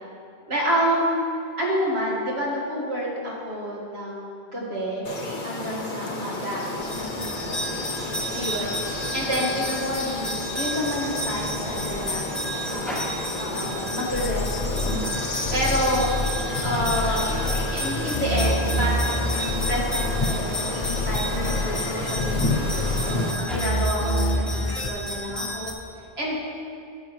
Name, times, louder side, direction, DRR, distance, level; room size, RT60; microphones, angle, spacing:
voice 1, 0.5-1.2 1.6-5.0 5.4-6.7 6.9-7.3 8.3-13.0 13.4-14.9 15.5-16.1 16.6-17.3 17.7-22.6 23.1-25.7 26.2-26.4, equal, 80° right, -4 dB, 2.1 m, -29 dB
sound 1, 5.1-23.3, left 2 dB, 55° left, 1.0 m, -31 dB
sound 2, 6.8-25.7, equal, ahead, 0.8 m, -32 dB
sound 3, 14.1-24.9, left 1 dB, 40° left, 0.6 m, -28 dB
11.5 x 8.1 x 3.1 m, 2.6 s
omnidirectional pair, 1.1 m